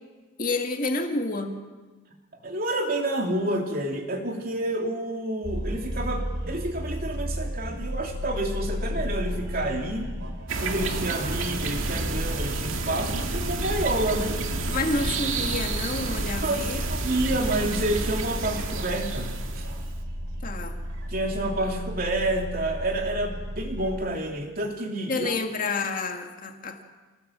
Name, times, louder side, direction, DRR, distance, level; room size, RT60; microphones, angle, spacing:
voice 1, 0.4-1.5 14.7-16.8 20.4-20.8 25.1-26.8, left 3 dB, 40° left, 4 dB, 2.1 m, -29 dB
voice 2, 2.4-10.1 10.6-14.4 16.4-19.6 21.1-25.3, right 1 dB, 45° right, 2 dB, 3.2 m, -29 dB
sound 1, 5.4-24.0, equal, 65° right, 4.3 m, -34 dB
sound 2, 10.5-19.9, right 3 dB, 80° right, 2.1 m, -30 dB
26.5 x 18.5 x 7.5 m, 1.3 s
head